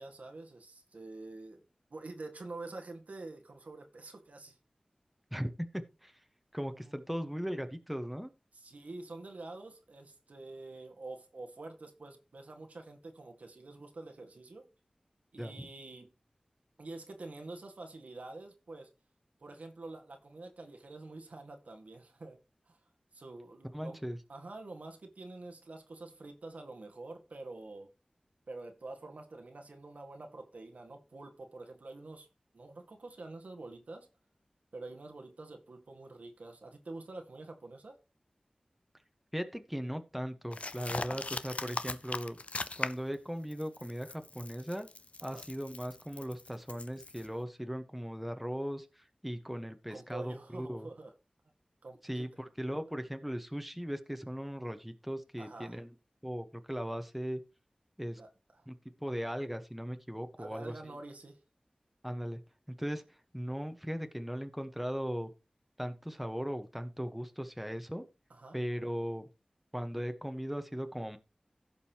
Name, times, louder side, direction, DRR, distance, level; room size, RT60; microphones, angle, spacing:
voice 1, 0.0-1.6 1.9-4.6 6.8-6.9 8.5-14.6 15.3-16.1 16.8-18.9 19.4-22.4 22.7-22.8 23.1-24.0 24.3-27.9 28.5-32.3 32.5-34.1 34.7-38.0 45.2-45.4 49.9-51.1 51.8-52.3 55.4-55.8 58.2-58.3 58.5-58.7 60.4-61.4 68.3-68.6, right 2 dB, 90° right, 1.7 m, -47 dB
voice 2, 5.3-5.7 6.0-6.1 6.5-8.3 15.4-15.7 23.7-24.2 39.3-42.4 42.8-44.9 45.2-50.9 52.0-55.9 56.2-57.4 58.0-58.2 58.7-58.8 59.0-60.7 62.0-62.4 62.7-65.3 65.8-68.0 68.5-69.3 69.7-71.2, equal, 5° right, 1.2 m, -38 dB
sound 1, 40.5-43.1 43.5-47.3, left 3 dB, 65° left, 0.6 m, -40 dB
16.0 x 5.4 x 3.0 m
wide cardioid pair, 55°, 2 cm